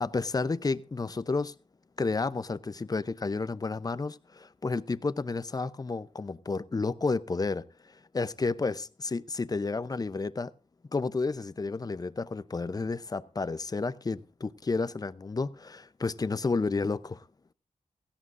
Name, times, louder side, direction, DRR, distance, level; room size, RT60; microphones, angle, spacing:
voice 1, 0.0-1.5 2.0-7.6 8.1-10.5 10.9-17.2, left 3 dB, 30° left, 0.7 m, -31 dB
17.0 x 16.0 x 2.6 m
wide cardioid pair, 95°, 13 cm